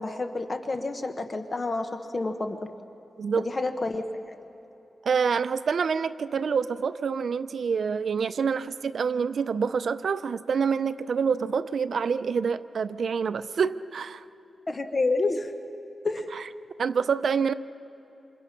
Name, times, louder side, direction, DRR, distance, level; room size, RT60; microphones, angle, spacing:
voice 1, 0.0-2.6 3.4-4.4 14.7-15.5 16.0-16.3, left 3 dB, 30° left, 6 dB, 0.9 m, -29 dB
voice 2, 5.0-14.2 16.3-16.4 16.8-17.5, right 6 dB, 65° right, 13 dB, 0.6 m, -27 dB
27.5 x 27.5 x 5.8 m, 3.0 s
wide cardioid pair, 135°, 0 cm